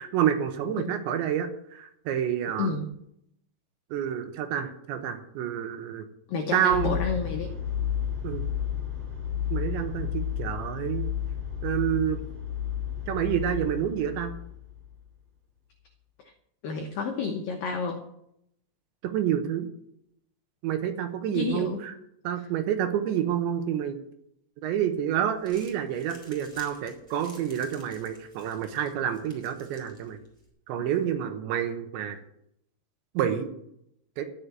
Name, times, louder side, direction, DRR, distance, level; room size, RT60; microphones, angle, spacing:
voice 1, 0.0-2.7 3.9-6.1 6.5-7.0 8.2-8.5 9.5-11.1 11.6-12.2 13.1-14.3 19.0-19.7 20.6-21.9 22.2-24.0 24.6-30.2 30.7-32.2 33.1-33.5 34.2-34.3, right 10 dB, 75° right, 7 dB, 3.2 m, -28 dB
voice 2, 2.6-2.9 6.3-7.6 16.6-18.1 21.3-21.8 30.8-30.9, left 4 dB, 85° left, 3 dB, 1.9 m, -30 dB
sound 1, 6.7-15.0, left 9 dB, 40° right, 2.6 m, -32 dB
Crumpling crinkling, 25.2-30.5, equal, 5° right, 3.1 m, -53 dB
12.5 x 6.9 x 8.9 m, 0.75 s
omnidirectional pair, 5.7 m